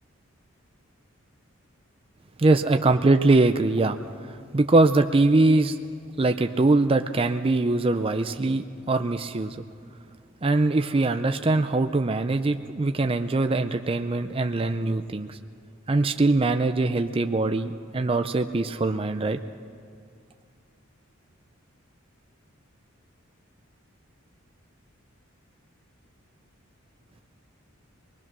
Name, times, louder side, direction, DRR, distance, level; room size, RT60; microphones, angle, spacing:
voice 1, 2.4-4.0 4.3-5.8 6.2-9.6 10.4-15.4 15.9-19.4, right 2 dB, 25° right, 7 dB, 0.5 m, -22 dB
26.5 x 20.5 x 6.1 m, 2.2 s
head